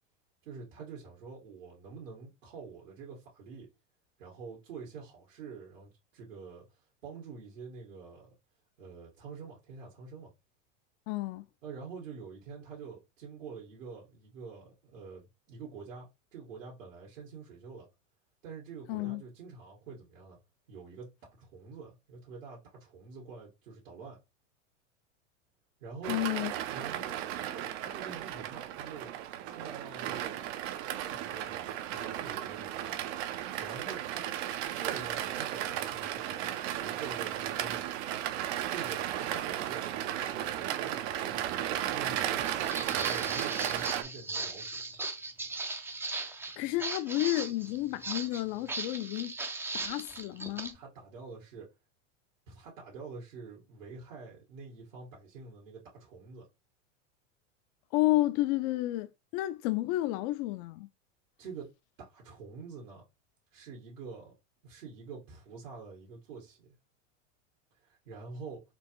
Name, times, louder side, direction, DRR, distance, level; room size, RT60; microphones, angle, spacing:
voice 1, 0.4-3.7 4.2-8.3 8.8-10.3 11.6-17.9 18.4-20.4 20.7-21.1 21.4-24.2 25.8-26.2 26.7-30.4 30.9-33.0 33.6-34.3 34.8-36.5 36.8-37.8 38.7-42.5 42.9-44.8 50.7-51.7 52.5-56.5 61.4-61.7 62.0-63.0 63.5-64.3 64.6-66.8 67.8-68.6, right 5 dB, 85° right, 1.7 m, -46 dB
voice 2, 11.1-11.5 18.9-19.2 26.1-26.5 46.6-49.4 49.7-50.8 57.9-60.9, left 17 dB, 50° left, 0.5 m, -31 dB
sound 1, 26.0-44.0, right 12 dB, 60° right, 0.7 m, -35 dB
Walk footsteps, 42.4-50.7, right 3 dB, 5° right, 0.4 m, -38 dB
4.3 x 2.5 x 3.0 m
hypercardioid pair, 110°, 38 cm